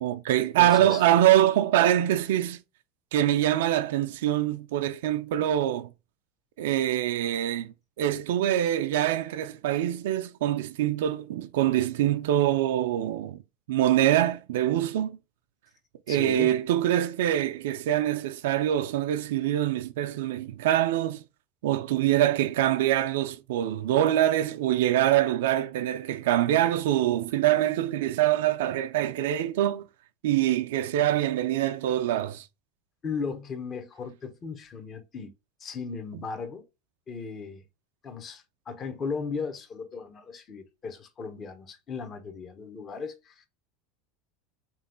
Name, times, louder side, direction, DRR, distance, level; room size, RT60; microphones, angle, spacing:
voice 1, 0.0-2.6 3.1-5.9 6.6-13.4 13.7-15.2 16.1-21.2 21.6-29.9 30.2-32.4, right 12 dB, 75° right, 0.4 m, -24 dB
voice 2, 0.6-1.0 16.1-16.5 33.0-35.3 35.6-36.6 37.1-37.6 38.0-43.5, left 5 dB, 35° left, 1.0 m, -36 dB
3.4 x 3.1 x 3.8 m
hypercardioid pair, 85°, 0 cm